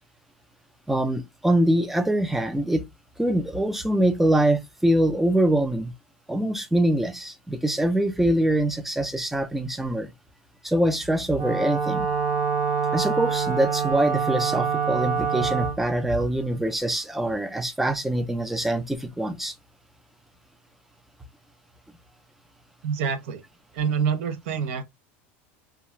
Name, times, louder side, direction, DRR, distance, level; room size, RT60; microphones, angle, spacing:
voice 1, 0.9-2.9 3.2-5.9 6.3-10.1 10.6-12.1 12.9-19.5, right 1 dB, 5° right, 0.3 m, -24 dB
Wind instrument woodwind instrument, 11.3-15.8, right 6 dB, 30° right, 0.7 m, -25 dB
voice 2, 22.8-23.4 23.7-24.8, right 6 dB, 75° right, 0.6 m, -26 dB
2.4 x 2.2 x 2.9 m
supercardioid pair, 155°, 7 cm